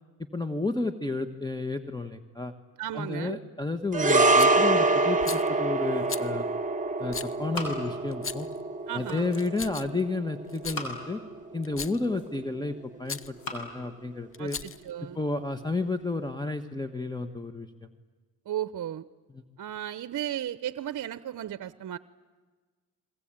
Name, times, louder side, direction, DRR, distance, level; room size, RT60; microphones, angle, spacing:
voice 1, 0.3-2.5 2.9-6.5 7.0-8.5 8.9-11.2 11.5-14.6 15.1-17.7 19.3-19.4, left 3 dB, 10° left, 8 dB, 1.4 m, -31 dB
voice 2, 2.8-3.4 8.9-9.3 14.4-15.2 18.5-19.0 19.6-22.0, right 11 dB, 55° right, 14 dB, 0.8 m, -35 dB
sound 1, 3.9-12.4 12.7-12.9, right 2 dB, 20° right, 1.8 m, -26 dB
Rattle, 4.4-4.6 5.2-5.5 6.1-6.3 7.1-7.3 8.1-8.6 9.3-10.0 10.5-10.8 11.6-12.0 13.0-13.3 14.3-14.9, left 6 dB, 35° left, 0.9 m, -37 dB
sound 2, 5.6-6.6 6.9-8.4 8.7-9.5 10.4-11.3 11.8-12.6 13.1-13.7, left 1 dB, 70° left, 6.1 m, -41 dB
29.5 x 22.0 x 9.0 m, 1.4 s
cardioid pair, 70°, 37 cm